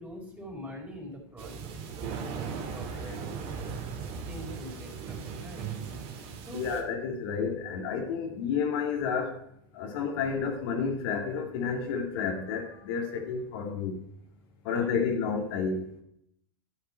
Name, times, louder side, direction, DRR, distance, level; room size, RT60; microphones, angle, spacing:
voice 1, 0.0-3.2 4.3-5.7 6.5-6.7 14.6-14.9, equal, 15° right, -1 dB, 4.8 m, -44 dB
sound 1, 1.4-6.8, right 6 dB, 50° right, 2.5 m, -38 dB
voice 2, 6.5-9.4 9.7-14.0 14.6-15.9, left 6 dB, 70° left, 2 dB, 2.5 m, -30 dB
11.0 x 9.2 x 4.5 m, 0.72 s
hypercardioid pair, 105°, 13 cm